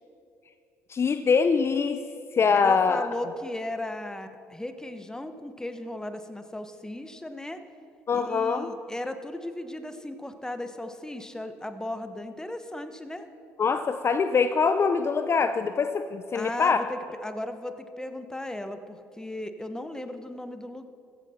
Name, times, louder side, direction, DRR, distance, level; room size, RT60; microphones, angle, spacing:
voice 1, 0.9-2.0 2.3-3.0 8.1-8.7 13.6-16.8, left 5 dB, 35° left, 9 dB, 0.5 m, -23 dB
voice 2, 2.6-7.6 8.1-13.3 16.3-20.9, left 1 dB, 10° left, 9 dB, 1.0 m, -36 dB
15.0 x 9.4 x 4.3 m, 2.6 s
hypercardioid pair, 50°, 7 cm